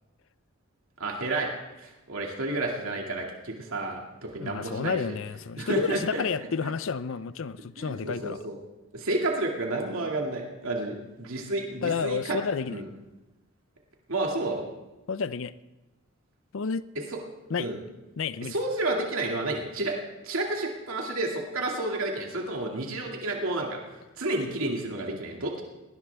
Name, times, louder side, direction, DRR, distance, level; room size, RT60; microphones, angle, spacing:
voice 1, 1.0-1.5 1.8-5.1 5.6-6.7 7.8-8.5 8.9-12.4 12.7-12.8 14.1-14.7 17.1-17.2 17.6-17.8 18.5-20.0 20.2-23.8 24.2-25.6, right 2 dB, 75° right, 0 dB, 2.3 m, -31 dB
voice 2, 4.4-8.4 11.8-12.8 15.1-15.5 16.5-16.9 17.5-17.7 18.2-18.5, left 5 dB, 65° left, 15 dB, 0.5 m, -30 dB
19.5 x 19.5 x 3.5 m, 1.0 s
head